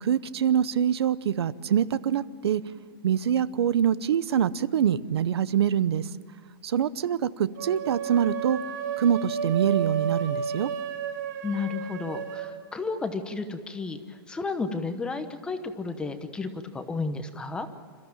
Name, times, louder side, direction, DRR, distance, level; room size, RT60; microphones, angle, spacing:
voice 1, 0.0-2.6 3.0-6.0 6.6-8.6 9.0-10.7, right 9 dB, 85° right, 17 dB, 0.8 m, -25 dB
sound 1, 7.5-12.5, right 8 dB, 50° right, 5.2 m, -32 dB
voice 2, 11.4-17.7, left 4 dB, 5° left, 8 dB, 0.9 m, -32 dB
28.0 x 14.0 x 9.0 m, 2.1 s
supercardioid pair, 170°, 13 cm